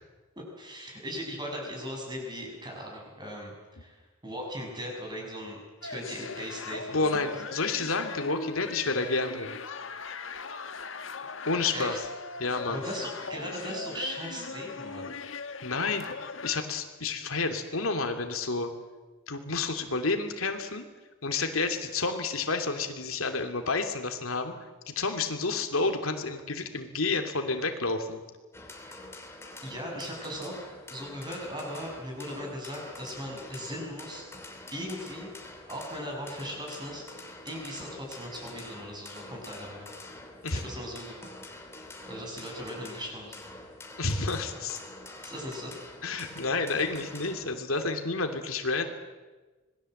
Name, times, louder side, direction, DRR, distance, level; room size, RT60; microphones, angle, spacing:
voice 1, 0.4-7.3 11.7-12.0 12.6-15.1 29.6-30.6 30.9-34.2 34.7-35.3 35.7-37.1 37.5-39.9 40.5-41.3 42.1-43.4 45.2-45.7, equal, 20° right, 1 dB, 6.9 m, -38 dB
sound 1, 5.8-16.6, left 4 dB, 70° left, 1.6 m, -39 dB
voice 2, 6.9-9.5 11.5-11.9 12.4-12.8 15.6-16.0 16.4-18.7 19.3-20.8 21.2-24.5 24.9-28.2 40.4-40.6 44.0-44.8 46.0-48.9, left 3 dB, 90° left, 5 dB, 2.8 m, -30 dB
sound 2, 28.5-47.6, left 2 dB, 15° left, 3.1 m, -46 dB
26.5 x 20.5 x 7.9 m, 1.2 s
head